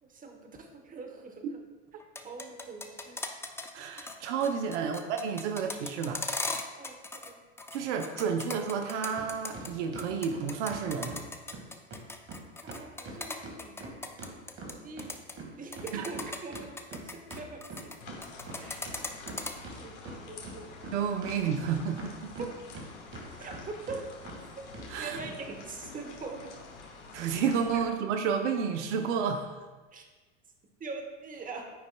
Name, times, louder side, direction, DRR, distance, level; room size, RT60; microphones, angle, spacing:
voice 1, 0.0-1.5 2.2-3.2 4.8-4.9 6.8-7.4 12.6-14.0 14.6-15.1 15.6-17.9 18.5-18.9 19.7-20.7 22.4-22.5 23.4-24.0 25.0-26.6 27.7-27.8 29.9-30.0 30.8-31.7, right 4 dB, 25° right, 3 dB, 1.0 m, -43 dB
sound 1, 2.0-3.7 4.0-4.2 4.4-7.3 7.6-9.7 10.0-14.7 15.0-15.3 15.7-18.0 18.2-19.5, left 3 dB, 5° left, 0.4 m, -37 dB
voice 2, 3.7-6.2 7.7-11.1 15.9-16.1 20.9-22.5 24.9-25.2 27.1-29.5, right 6 dB, 75° right, 5 dB, 0.7 m, -31 dB
sound 2, 9.2-9.3 9.5-11.2 11.5-11.6 11.9-12.0 12.3-12.4 12.7-15.1 15.4-18.2 18.5-18.6 18.8-19.8 20.0-20.9 21.2-22.8 23.1-23.6 23.9-24.0 24.2-24.4 24.7-24.9 25.2-25.3, right 3 dB, 40° right, 1.8 m, -43 dB
sound 3, 18.0-27.8, left 4 dB, 85° left, 1.4 m, -48 dB
9.3 x 5.3 x 2.2 m, 1.3 s
hypercardioid pair, 90°, 35 cm